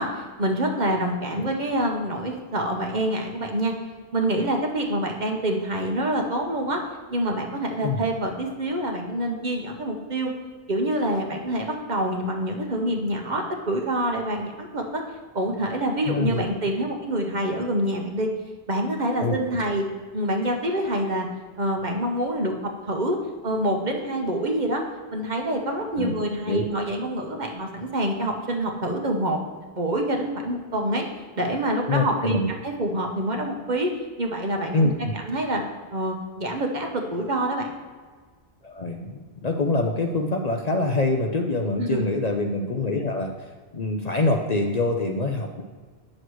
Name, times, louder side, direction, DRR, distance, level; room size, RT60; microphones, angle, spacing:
voice 1, 0.0-3.7 4.1-6.8 7.1-10.3 10.7-15.0 15.3-18.3 18.7-19.8 20.1-21.3 21.6-22.5 22.9-23.2 23.4-24.8 25.1-29.4 29.8-31.0 31.4-34.9 35.3-35.6 35.9-37.7 41.8-42.1, right 1 dB, 45° right, 2 dB, 1.0 m, -26 dB
voice 2, 16.1-16.4 19.2-19.3 19.7-19.8 26.0-26.1 26.5-26.6 31.9-32.5 34.7-35.1 38.6-45.6, left 2 dB, 45° left, 2 dB, 0.6 m, -25 dB
9.6 x 6.4 x 3.1 m, 1.5 s
omnidirectional pair, 1.1 m